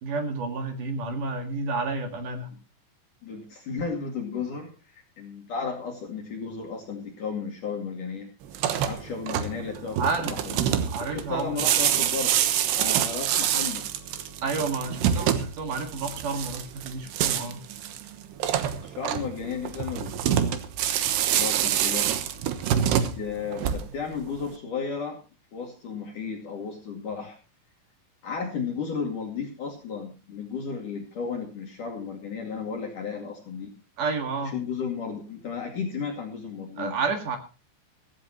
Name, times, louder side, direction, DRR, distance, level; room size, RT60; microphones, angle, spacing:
voice 1, 0.0-2.5 9.9-10.3 10.9-11.6 14.4-17.6 34.0-34.5 36.8-37.4, right 4 dB, 55° right, 5 dB, 2.7 m, -30 dB
voice 2, 3.2-8.3 8.9-10.6 11.1-12.3 12.8-13.8 18.8-20.4 21.3-22.1 23.2-25.2 25.5-27.4 28.2-33.7 34.4-37.0, left 5 dB, 45° left, 1 dB, 3.3 m, -34 dB
sound 1, 8.5-24.1, right 10 dB, 70° right, 2.7 m, -26 dB
16.0 x 16.0 x 3.1 m, 0.32 s
omnidirectional pair, 5.9 m